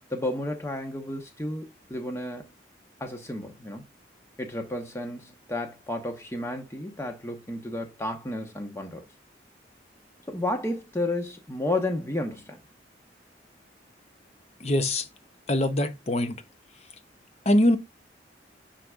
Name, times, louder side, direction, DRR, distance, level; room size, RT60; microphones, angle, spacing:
voice 1, 0.1-2.5 3.0-3.8 4.4-9.0 10.3-12.6, left 1 dB, 15° left, 1.1 m, -32 dB
voice 2, 14.6-15.1 15.5-16.3 17.5-17.8, left 1 dB, 35° left, 0.7 m, -23 dB
9.6 x 4.2 x 2.4 m
head